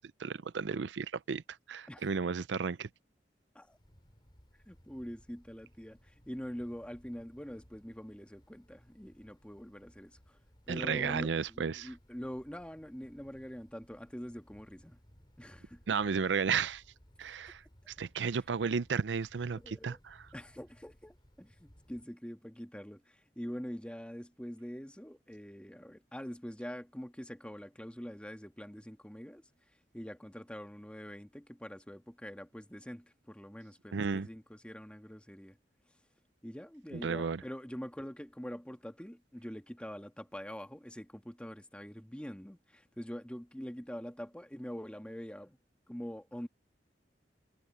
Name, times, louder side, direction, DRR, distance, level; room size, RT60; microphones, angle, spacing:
voice 1, 0.0-1.4 1.7-2.9 10.7-11.9 15.9-16.8 17.2-20.2 33.9-34.3 37.0-37.4, right 5 dB, 85° right, 0.5 m, -33 dB
Wind, 3.6-22.0, equal, 25° left, 5.4 m, -63 dB
voice 2, 4.7-10.4 10.7-15.0 15.4-15.8 19.5-20.0 20.3-29.4 29.9-35.6 36.4-45.6 45.9-46.5, equal, 5° left, 1.6 m, -44 dB
head